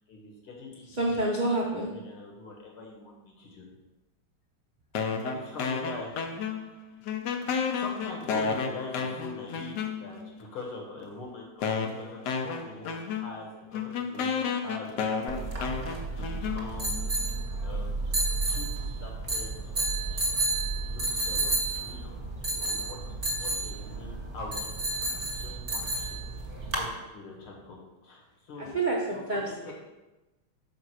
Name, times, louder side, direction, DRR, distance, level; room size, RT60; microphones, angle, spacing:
voice 1, 0.0-1.6 1.9-3.7 5.3-6.1 7.4-17.2 17.6-19.9 20.8-22.2 22.5-23.0 23.3-26.4 26.7-28.8 29.1-29.7, left 3 dB, 85° left, -1 dB, 2.5 m, -44 dB
voice 2, 1.0-2.0 28.6-29.7, right 2 dB, 90° right, -3 dB, 0.4 m, -28 dB
sound 1, 4.9-6.8 7.1-10.3 11.0-11.1 11.6-17.0, left 5 dB, 65° left, 1.1 m, -32 dB
sound 2, 15.3-26.9, right 2 dB, 35° right, 1.7 m, -31 dB
5.1 x 5.1 x 6.2 m, 1.0 s
omnidirectional pair, 2.3 m